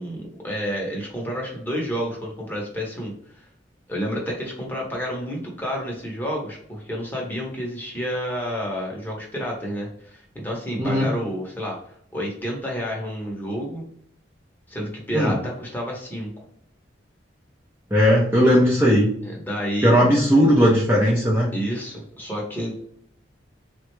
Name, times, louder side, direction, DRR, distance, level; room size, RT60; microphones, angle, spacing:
voice 1, 0.0-3.1 3.9-11.8 12.1-13.9 14.7-16.3 19.2-19.9 21.5-22.8, equal, 10° left, -2 dB, 0.9 m, -30 dB
voice 2, 17.9-19.1 19.8-21.5, equal, 10° right, -5 dB, 0.6 m, -17 dB
3.6 x 2.2 x 3.0 m, 0.66 s
head